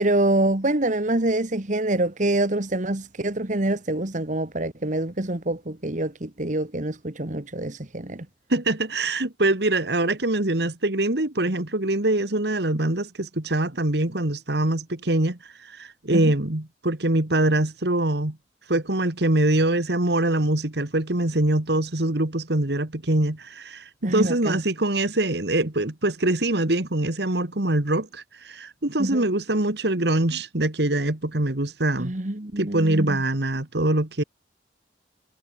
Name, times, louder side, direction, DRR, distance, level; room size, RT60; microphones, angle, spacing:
voice 1, 0.0-8.2 16.1-16.3 24.0-24.6 29.0-29.3 32.0-33.2, right 1 dB, 45° right, 1.7 m, -25 dB
voice 2, 8.5-18.4 18.7-32.1 32.6-34.2, right 1 dB, 65° right, 2.0 m, -24 dB
head